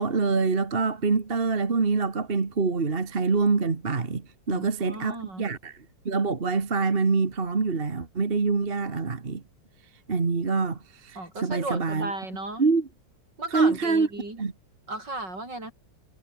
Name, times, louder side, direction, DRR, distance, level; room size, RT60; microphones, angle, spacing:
voice 1, 0.0-5.8 6.1-9.4 10.1-12.1 12.6-12.9 13.5-14.1 14.4-14.5, right 4 dB, 30° right, 1.8 m, -25 dB
voice 2, 4.5-5.5 11.2-12.6 13.4-14.4 14.9-15.7, right 2 dB, 65° right, 8.9 m, -35 dB
omnidirectional pair, 2.1 m